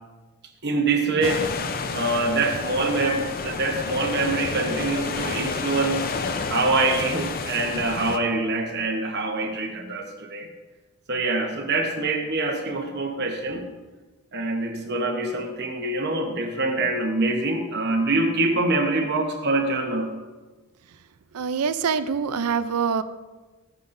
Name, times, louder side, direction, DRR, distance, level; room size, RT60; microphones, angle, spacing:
voice 1, 0.6-1.4 1.9-6.0 6.5-10.5 11.1-13.6 14.3-20.1, right 2 dB, 50° right, 3 dB, 1.0 m, -25 dB
Beach - Waves & People, 1.2-8.2, left 4 dB, 40° left, 0.6 m, -30 dB
voice 2, 21.3-23.0, right 6 dB, 85° right, 13 dB, 0.5 m, -25 dB
13.5 x 9.5 x 2.6 m, 1.2 s
head